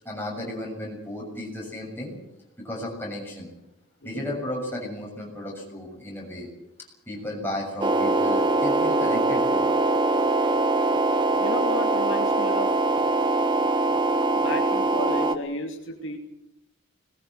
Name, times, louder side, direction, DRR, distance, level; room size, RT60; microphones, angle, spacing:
voice 1, 0.0-2.2 2.6-3.5 4.0-6.5 7.1-9.7, left 1 dB, 10° left, -2 dB, 7.0 m, -34 dB
sound 1, 7.8-15.4, right 2 dB, 20° right, 1.1 m, -22 dB
voice 2, 11.4-12.7 14.4-16.2, left 2 dB, 55° left, 1 dB, 2.7 m, -33 dB
21.5 x 20.5 x 8.0 m, 0.85 s
head